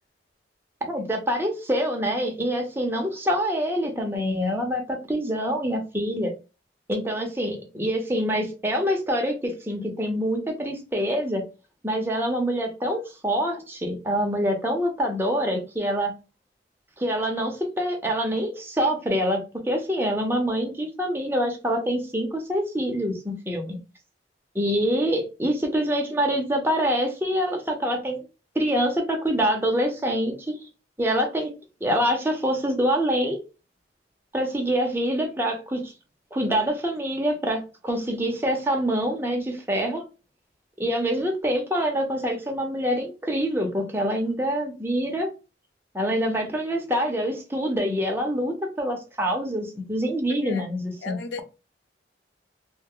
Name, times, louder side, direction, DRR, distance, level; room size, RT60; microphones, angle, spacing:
voice 1, 0.8-6.3 6.9-11.4 11.8-16.1 17.0-23.8 24.5-28.2 28.5-30.4 31.0-31.5 31.8-33.4 34.3-35.9 36.3-40.0 40.8-45.3 45.9-51.2, equal, 10° right, 0.6 m, -25 dB
voice 2, 50.3-50.6 51.0-51.4, left 4 dB, 75° left, 0.4 m, -35 dB
2.5 x 2.2 x 3.7 m
head